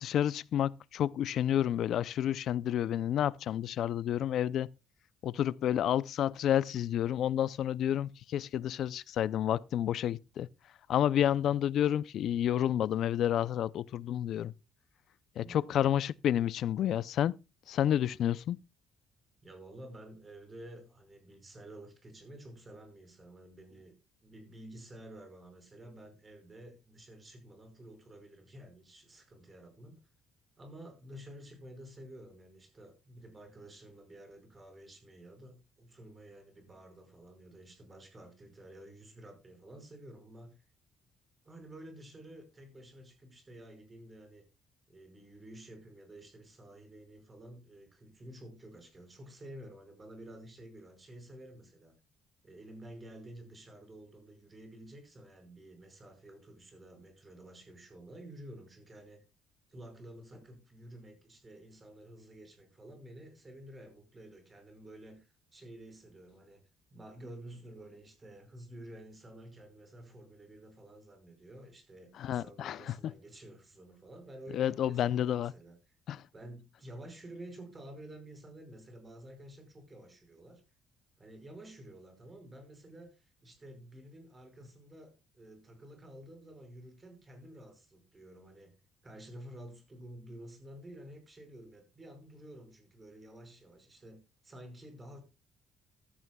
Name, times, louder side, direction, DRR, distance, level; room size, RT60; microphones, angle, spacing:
voice 1, 0.0-4.7 5.2-10.5 10.9-14.5 15.4-17.4 17.7-18.6 72.2-72.9 74.5-75.5 76.1-76.2, left 10 dB, 60° left, 0.5 m, -30 dB
voice 2, 15.3-15.9 19.4-24.0 24.2-30.0 30.6-40.6 41.4-44.4 44.9-51.9 52.4-59.2 59.7-66.6 66.9-76.0 76.3-80.6 81.2-88.7 89.0-95.2, right 1 dB, 20° right, 5.3 m, -51 dB
15.0 x 14.0 x 2.3 m
cardioid pair, 130°, 0 cm